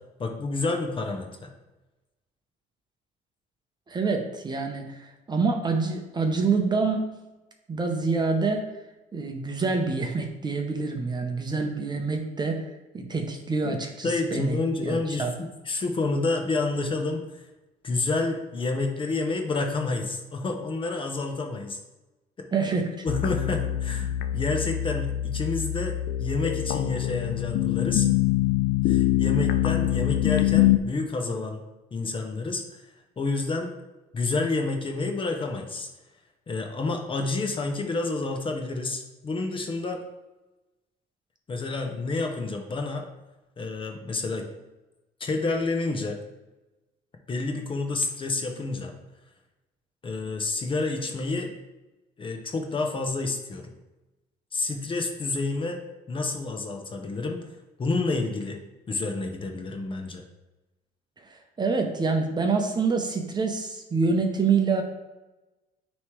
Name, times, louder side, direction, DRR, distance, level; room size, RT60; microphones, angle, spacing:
voice 1, 0.2-1.5 13.6-13.7 14.0-17.2 17.8-21.8 22.4-22.5 23.0-28.1 28.8-31.6 31.9-32.8 33.2-33.7 34.1-35.9 36.5-40.0 41.5-43.0 43.6-44.4 45.2-46.2 47.3-48.9 50.0-51.5 52.2-53.7 54.5-55.8 56.1-57.4 57.8-58.6 58.9-60.2, left 3 dB, 30° left, 3 dB, 0.9 m, -29 dB
voice 2, 3.9-7.1 7.7-8.7 9.1-14.6 14.8-15.3 22.5-23.1 61.2-64.8, right 4 dB, 25° right, 3 dB, 0.8 m, -26 dB
sound 1, 23.1-30.8, left 14 dB, 65° left, 0.4 m, -24 dB
9.4 x 3.2 x 3.2 m, 1.0 s
cardioid pair, 110°, 17 cm